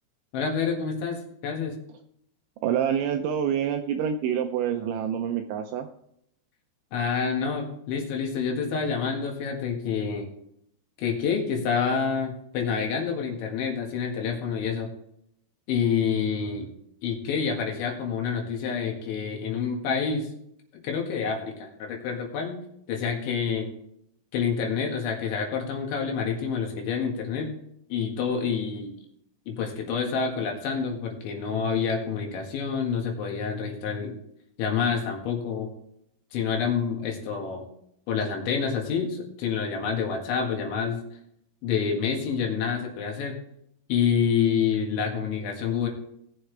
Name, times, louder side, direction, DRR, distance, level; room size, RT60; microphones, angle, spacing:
voice 1, 0.3-1.8 6.9-10.3 11.0-14.9 15.7-16.7 17.0-20.3 20.8-22.6 22.9-23.7 24.3-27.5 27.9-29.0 29.5-34.2 34.6-35.7 36.3-37.7 38.1-41.0 41.6-43.4 43.9-45.9, left 6 dB, 70° left, 1 dB, 3.9 m, -28 dB
voice 2, 2.6-5.9, right 8 dB, 80° right, 5 dB, 2.7 m, -27 dB
19.0 x 7.1 x 3.3 m, 0.73 s
omnidirectional pair, 6.0 m